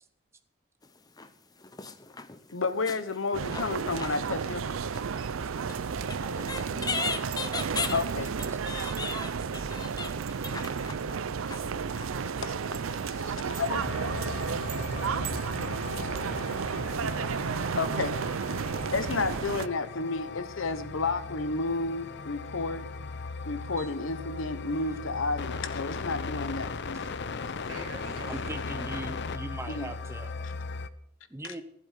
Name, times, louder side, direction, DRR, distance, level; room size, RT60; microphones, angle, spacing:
sound 1, 0.8-1.3 1.6-4.6 4.9-13.0 13.4-13.5, left 4 dB, 20° left, 0.8 m, -38 dB
voice 1, 2.5-5.0 7.9-8.3 12.9-13.2 13.6-13.8 17.8-18.1 18.9-22.9 23.4-27.0 29.7-29.9, left 3 dB, 75° left, 11 dB, 1.1 m, -31 dB
sound 2, 3.3-19.7, right 6 dB, 90° right, 0.5 m, -32 dB
voice 2, 5.8-8.7 13.2-14.7 19.2-19.4 19.6-20.2 26.9-28.9, right 2 dB, 70° right, 2 dB, 3.0 m, -49 dB
sound 3, 13.7-30.9, left 4 dB, 60° left, 0.7 m, -38 dB
voice 3, 28.3-30.4 31.3-31.6, right 2 dB, 15° right, 7 dB, 0.8 m, -40 dB
15.0 x 8.0 x 7.5 m, 0.74 s
head